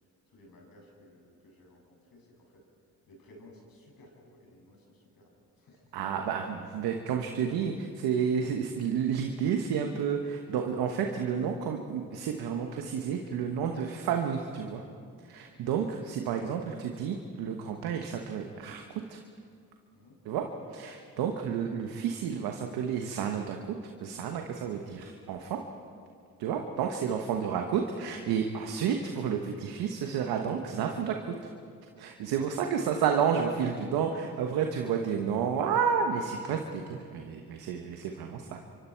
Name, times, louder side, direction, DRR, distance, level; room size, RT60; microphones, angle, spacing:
voice 1, 0.3-2.6 3.1-6.0 15.6-15.9 19.9-20.2 26.4-26.7 27.1-27.6 34.9-35.3 38.4-38.6, left 1 dB, 70° left, -1 dB, 7.3 m, -57 dB
voice 2, 5.9-14.8 15.2-19.2 20.2-25.6 26.4-31.5 32.0-38.6, right 7 dB, 90° right, 3 dB, 1.3 m, -31 dB
27.0 x 24.5 x 4.6 m, 2.3 s
supercardioid pair, 50°, 37 cm